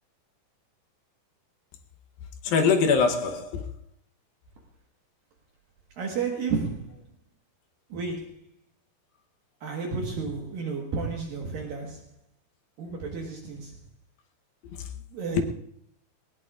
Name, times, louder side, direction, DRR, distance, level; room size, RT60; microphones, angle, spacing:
voice 1, 2.4-3.7 14.6-14.9 15.2-15.4, left 5 dB, 70° left, 5 dB, 2.5 m, -24 dB
voice 2, 6.0-6.9 7.9-8.3 9.6-12.0 12.8-13.7 15.1-15.4, right 4 dB, 65° right, 0 dB, 2.9 m, -32 dB
20.0 x 20.0 x 2.5 m, 0.65 s
omnidirectional pair, 5.0 m